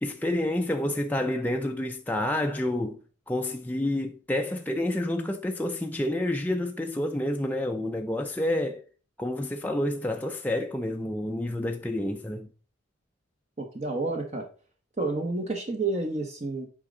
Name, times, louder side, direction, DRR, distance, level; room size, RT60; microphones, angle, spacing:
voice 1, 0.0-3.0 3.3-8.8 9.2-12.5, left 1 dB, 10° left, 0.5 m, -29 dB
voice 2, 13.6-14.5 15.0-16.7, right 3 dB, 35° right, 0.9 m, -30 dB
8.5 x 5.2 x 3.8 m
head